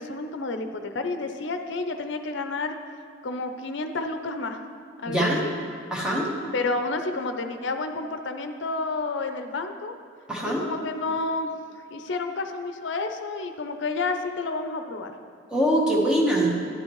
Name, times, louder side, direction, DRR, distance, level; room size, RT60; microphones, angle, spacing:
voice 1, 0.0-2.8 3.2-4.6 5.0-5.5 6.5-10.0 10.5-11.5 11.9-15.1, left 3 dB, 70° left, 7 dB, 0.6 m, -30 dB
voice 2, 5.0-5.4 5.9-6.3 10.3-10.6 15.5-16.5, right 1 dB, 5° right, -4 dB, 1.1 m, -23 dB
10.5 x 9.0 x 3.1 m, 2.2 s
head